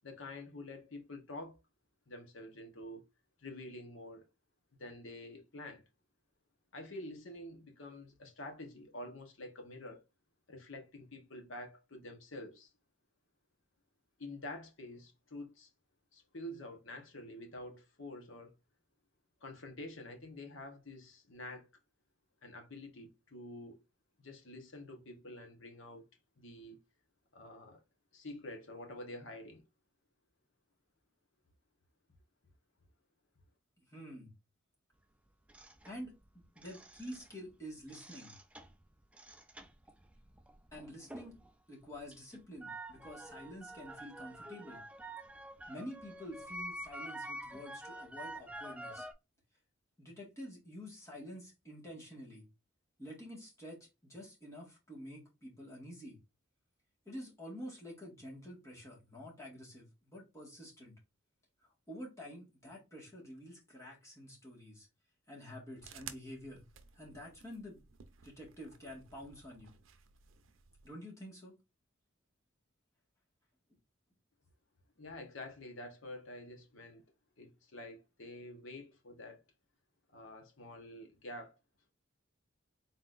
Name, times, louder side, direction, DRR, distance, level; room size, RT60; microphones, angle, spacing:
voice 1, 0.0-1.6 2.1-3.0 3.4-4.2 4.7-5.8 6.7-10.0 10.5-12.7 14.2-15.7 16.1-18.5 19.4-21.7 22.4-23.8 24.2-26.1 26.4-26.8 27.3-27.8 28.1-29.6 75.0-77.0 77.4-79.4 80.1-81.6, left 1 dB, 70° left, 1.1 m, -48 dB
voice 2, 33.8-34.3 35.8-38.4 40.7-41.4 41.7-44.8 45.7-49.1 50.0-52.5 53.0-56.2 57.0-60.9 61.9-64.9 65.3-66.6 66.9-67.8 68.2-69.7 70.8-71.5, equal, 15° left, 1.8 m, -48 dB
sound 1, 35.5-37.5 37.8-41.5 41.8-49.1, right 1 dB, 5° right, 0.4 m, -48 dB
sound 2, 65.8-70.9, right 8 dB, 75° right, 0.6 m, -55 dB
4.0 x 3.9 x 2.5 m
head